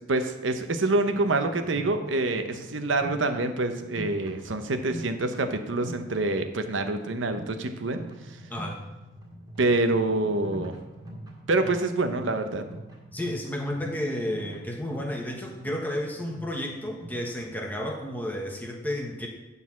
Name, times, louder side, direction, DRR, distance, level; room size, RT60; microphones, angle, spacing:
voice 1, 0.1-8.0 9.6-10.7 11.5-12.6, right 2 dB, 90° right, 7 dB, 0.8 m, -26 dB
sound 1, 1.1-17.7, right 1 dB, 20° right, 2.0 m, -43 dB
voice 2, 8.5-8.8 13.1-19.3, left 1 dB, 10° left, 1 dB, 1.0 m, -32 dB
9.4 x 4.1 x 7.2 m, 1.1 s
head